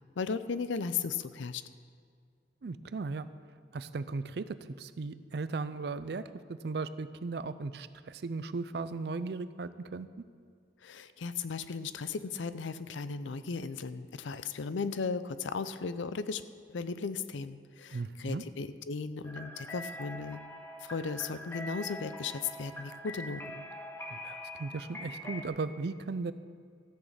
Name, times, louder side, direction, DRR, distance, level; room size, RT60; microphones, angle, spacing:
voice 1, 0.2-1.6 10.8-16.4 16.7-20.4 20.8-23.7, left 5 dB, 80° left, 13 dB, 0.5 m, -36 dB
voice 2, 2.6-3.3 3.7-6.2 6.5-10.1 17.9-18.4 24.1-26.3, right 3 dB, 60° right, 13 dB, 0.4 m, -37 dB
sound 1, 19.2-25.5, left 1 dB, 15° left, 1.0 m, -43 dB
14.0 x 6.4 x 7.3 m, 2.1 s
head